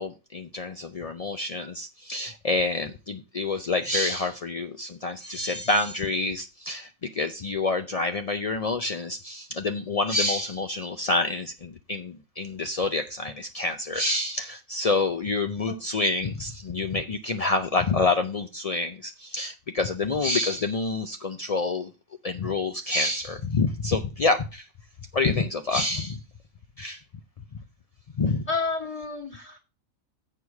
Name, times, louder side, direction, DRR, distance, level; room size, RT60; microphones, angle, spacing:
voice 1, 0.0-21.9 22.2-24.7 25.1-26.2 26.8-27.0 28.1-28.4, left 3 dB, 65° left, 7 dB, 0.3 m, -27 dB
voice 2, 15.7-16.0 28.5-29.6, left 4 dB, 25° left, -1 dB, 1.3 m, -31 dB
7.9 x 4.8 x 7.0 m, 0.31 s
omnidirectional pair, 1.5 m